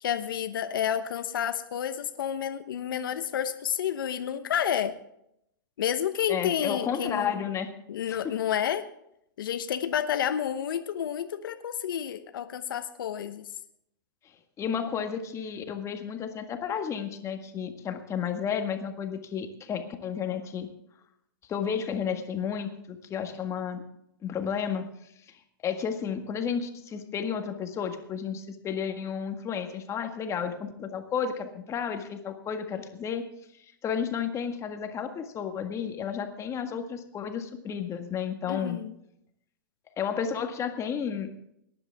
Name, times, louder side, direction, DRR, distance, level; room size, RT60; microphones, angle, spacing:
voice 1, 0.0-5.0 5.8-7.4 7.9-8.9 9.4-13.5 38.5-38.9, left 9 dB, 75° left, 10 dB, 1.0 m, -30 dB
voice 2, 6.3-7.7 8.1-8.3 14.6-20.7 21.5-23.8 24.2-24.9 25.3-33.2 33.8-38.8 40.0-41.5, left 7 dB, 25° left, 6 dB, 1.7 m, -32 dB
19.0 x 10.5 x 3.5 m, 0.75 s
hypercardioid pair, 120°, 11 cm